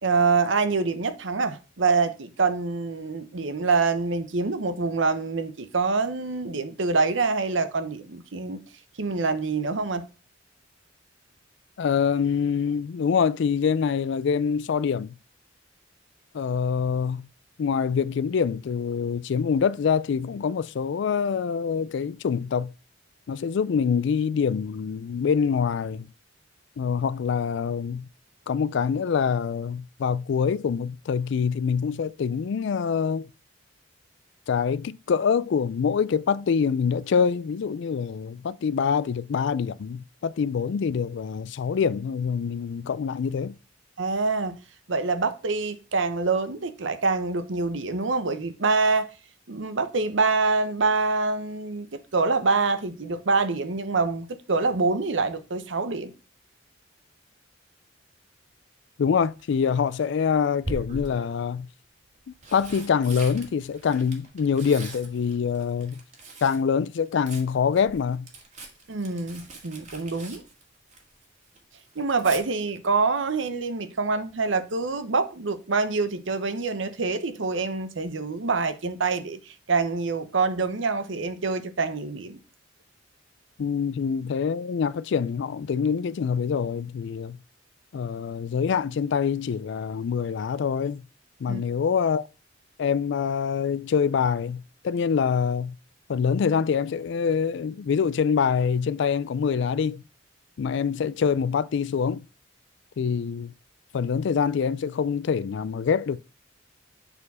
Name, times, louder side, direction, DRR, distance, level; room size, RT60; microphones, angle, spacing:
voice 1, 0.0-8.6 9.0-10.0 44.0-44.5 44.9-49.1 49.5-56.1 68.9-70.4 72.0-82.4 91.5-91.6, right 4 dB, 70° right, 0.8 m, -25 dB
voice 2, 11.8-15.1 16.3-17.3 17.6-22.7 23.3-26.1 26.8-28.1 28.5-33.3 34.5-43.6 59.0-61.7 62.5-66.0 66.4-68.3 83.6-87.4 87.9-91.0 91.4-92.3 92.8-95.8 96.1-100.0 100.6-102.2 103.0-103.5 103.9-106.2, left 6 dB, 65° left, 0.4 m, -25 dB
Tearing, 59.2-59.6 60.6-61.4 62.1-66.7 66.9-71.2 71.5-72.4 74.3-74.6 74.9-75.0, right 2 dB, 40° right, 1.7 m, -41 dB
6.9 x 4.5 x 4.1 m
head